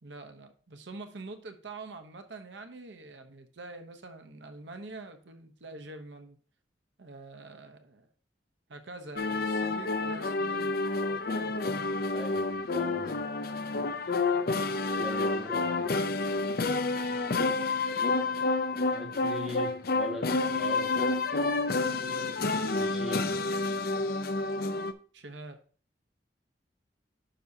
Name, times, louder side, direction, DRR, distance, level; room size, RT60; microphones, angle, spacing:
voice 1, 0.0-6.4 7.0-8.1 8.7-10.8 11.1-11.6 16.6-17.3 25.1-25.6, right 2 dB, 80° right, 6 dB, 0.9 m, -45 dB
sound 1, 9.2-24.9, left 3 dB, 55° left, 0.5 m, -29 dB
voice 2, 12.1-13.1 15.0-15.9 18.9-21.2 22.5-23.3, left 1 dB, 5° right, -1 dB, 1.7 m, -41 dB
10.0 x 5.9 x 2.8 m, 0.42 s
head